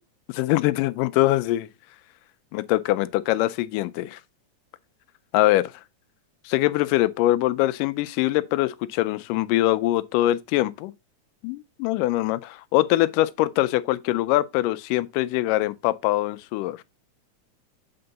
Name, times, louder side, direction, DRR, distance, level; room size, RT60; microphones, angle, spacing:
voice 1, 0.3-1.7 2.5-4.2 5.3-5.7 6.5-10.9 11.4-16.8, left 16 dB, 85° left, 2.2 m, -23 dB
7.8 x 4.4 x 3.9 m
omnidirectional pair, 3.7 m